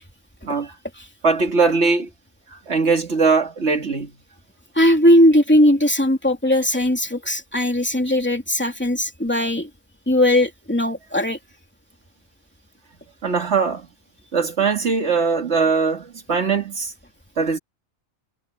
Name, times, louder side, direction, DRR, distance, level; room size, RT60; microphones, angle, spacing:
voice 1, 1.2-2.1 2.7-4.1 13.2-13.9 14.3-16.9 17.4-17.6, right 4 dB, 55° right, 2.4 m, -20 dB
voice 2, 4.7-9.7 10.1-11.4, left 1 dB, 10° left, 2.7 m, -18 dB
omnidirectional pair, 1.4 m